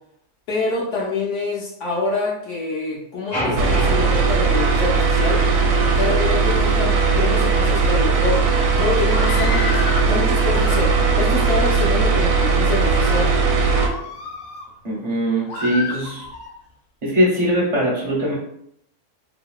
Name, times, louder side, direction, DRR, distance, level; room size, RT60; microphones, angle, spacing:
voice 1, 0.5-5.5 5.9-8.5 8.7-13.3, left 3 dB, 60° left, -3 dB, 0.8 m, -26 dB
sound 1, 3.3-5.6, equal, 25° left, 0.6 m, -29 dB
sound 2, 3.6-13.9, right 4 dB, 80° right, 1.1 m, -18 dB
Screaming, 9.0-10.1 10.5-11.3 11.9-12.5 13.0-13.2 13.7-14.7 15.5-16.5, left 4 dB, 80° left, 1.1 m, -31 dB
voice 2, 14.8-16.2 17.0-18.3, equal, 50° right, -4 dB, 0.5 m, -21 dB
2.8 x 2.6 x 2.3 m, 0.73 s
omnidirectional pair, 1.6 m